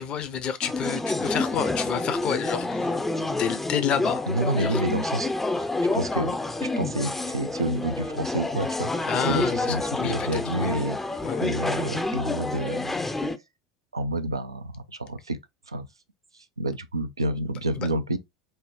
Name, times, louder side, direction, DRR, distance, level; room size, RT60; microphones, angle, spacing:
voice 1, 0.0-3.0 3.4-4.2 4.6-4.8 9.1-10.8 11.2-11.4 17.8-17.9, left 8 dB, 40° left, 0.8 m, -29 dB
sound 1, 0.6-13.4, left 2 dB, 10° left, 0.5 m, -28 dB
voice 2, 4.3-5.3 5.6-11.0 11.4-13.0 13.9-15.4 15.7-15.9 16.6-18.2, right 1 dB, 90° right, 0.5 m, -29 dB
5.5 x 2.1 x 2.6 m
figure-of-eight pair, 80°, 2 cm